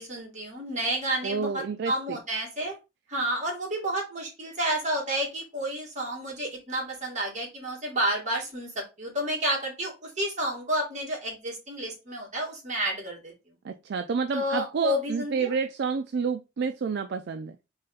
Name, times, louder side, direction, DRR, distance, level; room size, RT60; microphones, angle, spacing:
voice 1, 0.0-2.7 3.1-13.3 14.3-15.5, right 1 dB, 40° right, -2 dB, 2.0 m, -30 dB
voice 2, 1.2-2.2 13.6-17.6, right 5 dB, 60° right, 7 dB, 0.4 m, -29 dB
4.1 x 3.3 x 3.8 m, 0.27 s
head